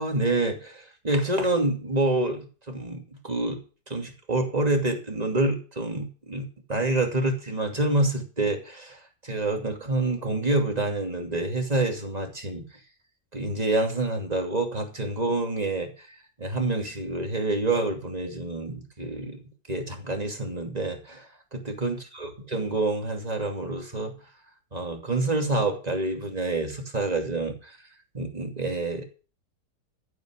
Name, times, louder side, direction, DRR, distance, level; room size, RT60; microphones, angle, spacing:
voice 1, 0.0-3.6 3.9-12.6 13.3-15.9 16.4-19.4 19.7-21.3 21.5-24.1 24.7-27.8 28.1-29.0, right 2 dB, 20° right, 3 dB, 2.7 m, -27 dB
14.0 x 8.2 x 6.4 m, 0.35 s
omnidirectional pair, 1.8 m